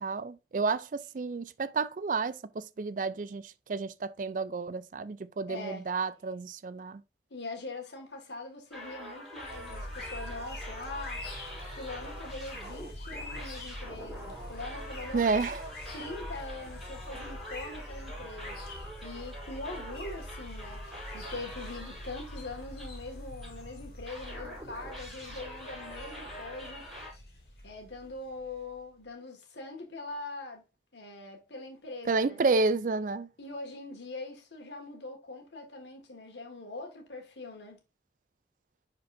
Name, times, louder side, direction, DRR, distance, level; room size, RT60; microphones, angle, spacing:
voice 1, 0.0-7.0 15.1-15.6 32.1-33.3, right 4 dB, 45° right, 0.4 m, -30 dB
voice 2, 5.5-5.8 7.3-11.3 11.7-15.3 15.9-26.9 27.6-30.6 30.9-32.4 33.4-37.8, left 2 dB, 80° left, 1.9 m, -42 dB
sound 1, 8.7-23.6 24.1-27.1, equal, ahead, 4.6 m, -45 dB
sound 2, 9.4-28.8, left 1 dB, 55° left, 2.8 m, -44 dB
10.0 x 4.5 x 2.6 m
head